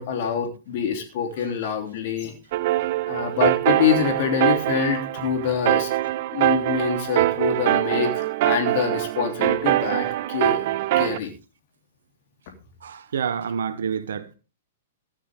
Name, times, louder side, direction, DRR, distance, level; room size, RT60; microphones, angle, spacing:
voice 1, 0.0-2.3 3.1-5.9 6.3-10.7 11.0-11.3, left 7 dB, 50° left, 3.2 m, -25 dB
sound 1, 2.5-11.2, right 15 dB, 50° right, 0.8 m, -23 dB
voice 2, 12.8-14.3, right 7 dB, 70° right, 1.4 m, -28 dB
15.0 x 12.0 x 3.6 m
figure-of-eight pair, 110°, 0 cm